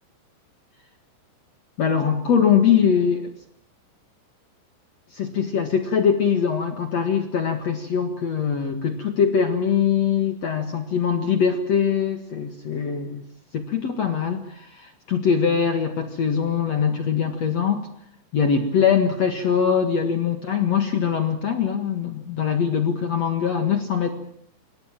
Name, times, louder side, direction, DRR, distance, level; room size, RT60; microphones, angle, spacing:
voice 1, 1.8-3.3 5.1-13.2 13.5-17.9 18.3-24.1, left 7 dB, 65° left, 7 dB, 1.7 m, -22 dB
27.5 x 24.0 x 7.5 m, 0.63 s
omnidirectional pair, 5.8 m